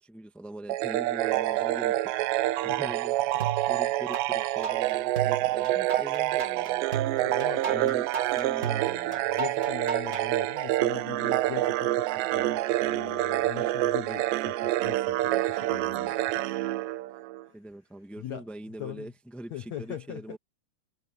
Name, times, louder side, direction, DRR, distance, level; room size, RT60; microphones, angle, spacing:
voice 1, 0.0-2.1 2.6-3.1 3.7-6.9 7.6-9.2 17.5-20.4, right 1 dB, ahead, 0.7 m, -42 dB
sound 1, 0.7-17.5, right 16 dB, 90° right, 3.0 m, -27 dB
sound 2, 3.4-4.2 4.6-10.3, right 7 dB, 35° right, 1.2 m, -34 dB
voice 2, 7.2-8.0 9.3-16.1 17.5-17.6 18.2-18.5 18.8-19.1 19.5-20.4, left 11 dB, 85° left, 1.5 m, -41 dB
omnidirectional pair, 5.1 m